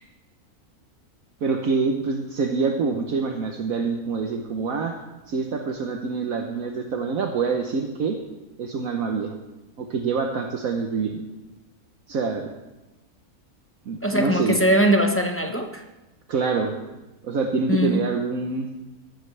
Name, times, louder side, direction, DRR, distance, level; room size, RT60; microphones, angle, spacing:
voice 1, 1.4-5.0 5.3-8.2 8.6-9.3 9.8-11.2 12.1-12.5 13.9-14.6 16.3-16.8 17.2-18.8, right 4 dB, 65° right, 3 dB, 1.4 m, -26 dB
voice 2, 14.0-15.8 17.7-18.0, equal, 10° left, 3 dB, 0.9 m, -21 dB
15.0 x 13.0 x 3.3 m, 1.1 s
omnidirectional pair, 1.6 m